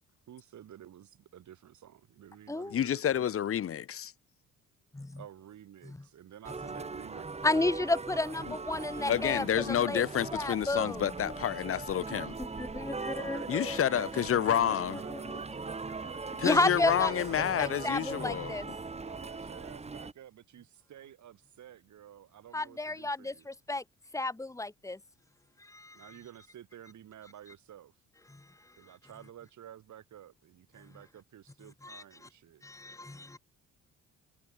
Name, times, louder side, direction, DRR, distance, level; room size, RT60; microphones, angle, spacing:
voice 1, 0.3-3.3 5.1-9.2 13.1-18.6 19.0-23.5 25.9-27.9 28.8-32.6, right 10 dB, 65° right, 6.4 m, -51 dB
voice 2, 2.7-4.1 9.1-12.4 13.5-15.0 16.4-18.6, left 9 dB, 45° left, 0.9 m, -29 dB
sound 1, 6.4-20.1, right 4 dB, 20° right, 1.3 m, -40 dB
voice 3, 7.4-10.0 10.3-11.3 11.9-14.0 14.5-14.6 15.1-15.4 16.4-17.1 17.4-18.7 22.5-23.8 24.1-25.0 25.6-26.1 28.3-28.4 31.8-32.3 32.6-33.4, left 2 dB, 10° left, 1.7 m, -32 dB
cardioid pair, 85°, 31 cm